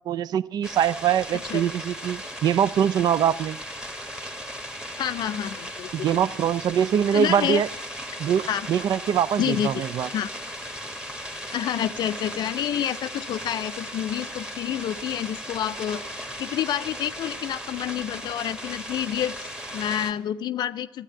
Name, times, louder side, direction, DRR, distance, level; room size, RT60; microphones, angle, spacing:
voice 1, 0.1-3.6 5.9-7.7 8.2-10.1, right 9 dB, 40° right, 19 dB, 0.4 m, -23 dB
sound 1, 0.6-20.1, equal, 5° right, 1.5 m, -37 dB
voice 2, 5.0-6.1 7.1-7.6 8.5-8.7 9.4-9.8 10.1-10.3 11.5-21.0, left 10 dB, 40° left, 13 dB, 0.4 m, -28 dB
13.0 x 8.2 x 8.6 m, 0.94 s
figure-of-eight pair, 65°, 11 cm